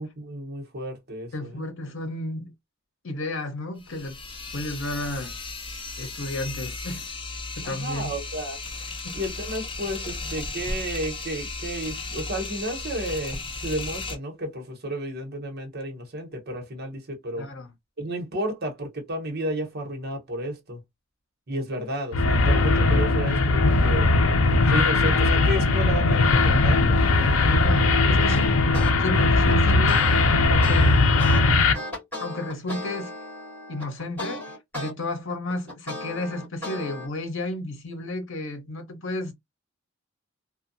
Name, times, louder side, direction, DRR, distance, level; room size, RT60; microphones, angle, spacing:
voice 1, 0.0-1.6 7.6-8.6 9.1-17.4 18.0-20.8 21.5-24.1 24.7-27.0, right 1 dB, 50° right, 1.0 m, -32 dB
voice 2, 1.3-2.5 3.0-4.2 4.5-5.3 6.0-7.1 7.6-8.1 17.4-17.7 27.5-28.6 29.0-30.0 30.5-30.9 31.3-31.4 32.2-33.1 33.7-39.3, left 1 dB, 65° left, 0.9 m, -32 dB
sound 1, 3.8-14.2, left 3 dB, 25° left, 0.6 m, -35 dB
sound 2, 22.1-31.7, left 3 dB, 85° left, 0.5 m, -19 dB
sound 3, 28.3-28.9 29.3-34.9 35.3-37.1, left 1 dB, 10° left, 1.8 m, -36 dB
2.7 x 2.2 x 2.6 m
head